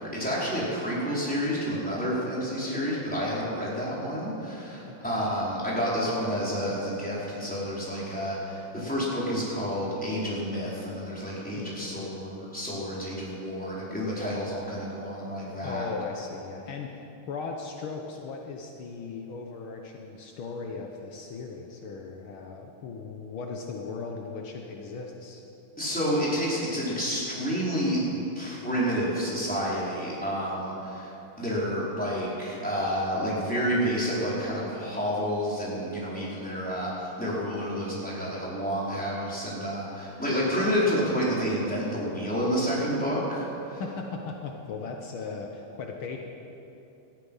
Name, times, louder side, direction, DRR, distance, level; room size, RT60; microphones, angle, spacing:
voice 1, 0.0-15.9 25.8-31.1 31.4-43.8, equal, 5° left, -7 dB, 4.6 m, -29 dB
voice 2, 4.9-5.2 11.5-12.2 15.6-25.4 43.8-46.2, left 4 dB, 70° left, 2 dB, 1.9 m, -38 dB
19.0 x 13.5 x 5.6 m, 3.0 s
omnidirectional pair, 2.4 m